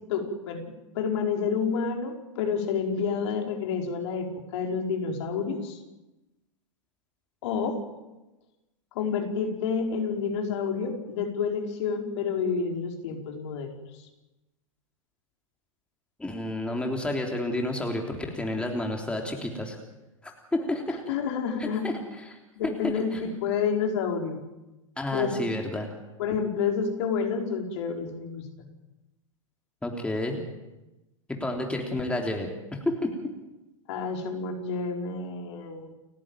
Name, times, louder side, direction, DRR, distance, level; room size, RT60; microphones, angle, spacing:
voice 1, 0.1-0.6 0.9-5.8 7.4-7.8 8.9-14.1 20.9-22.0 22.6-24.4 25.1-25.4 26.2-28.7 33.9-35.9, left 6 dB, 55° left, 2 dB, 4.7 m, -29 dB
voice 2, 16.2-19.8 20.2-21.0 21.6-21.9 22.3-22.4 22.8-23.3 25.0-25.9 29.8-30.4 31.3-32.5 32.8-33.1, left 1 dB, 5° left, 2 dB, 3.4 m, -30 dB
30.0 x 11.0 x 9.2 m, 1.0 s
figure-of-eight pair, 100°, 17 cm